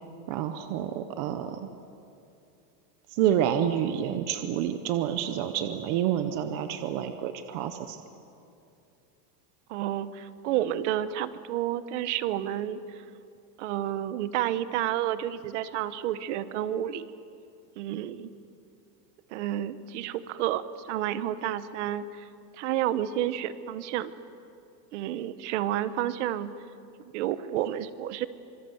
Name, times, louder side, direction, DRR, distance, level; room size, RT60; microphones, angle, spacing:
voice 1, 0.3-1.7 3.1-8.0, right 10 dB, 25° right, 9 dB, 0.6 m, -28 dB
voice 2, 9.7-12.8 13.6-17.1 17.8-18.3 19.3-22.3 22.6-24.1 24.9-26.5 27.1-28.3, right 12 dB, 45° right, 14 dB, 1.0 m, -30 dB
25.5 x 24.5 x 7.9 m, 2.6 s
supercardioid pair, 180°, 49 cm